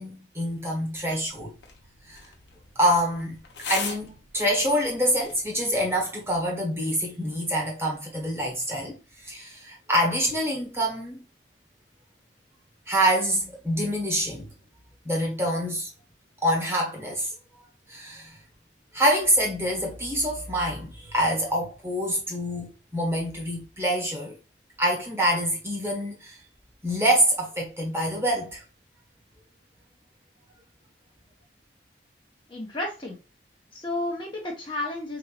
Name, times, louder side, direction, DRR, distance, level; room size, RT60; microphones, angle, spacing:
voice 1, 0.0-1.5 2.0-2.2 2.7-3.4 3.7-11.2 12.9-14.5 15.0-15.9 16.4-17.3 17.9-18.4 18.9-24.4 24.8-26.4 26.8-28.6, equal, 15° right, 1.2 m, -26 dB
sound 1, 1.0-6.0, left 5 dB, 70° left, 0.9 m, -40 dB
voice 2, 32.5-33.2 33.7-35.2, left 1 dB, 25° left, 0.9 m, -32 dB
4.4 x 3.0 x 2.4 m
head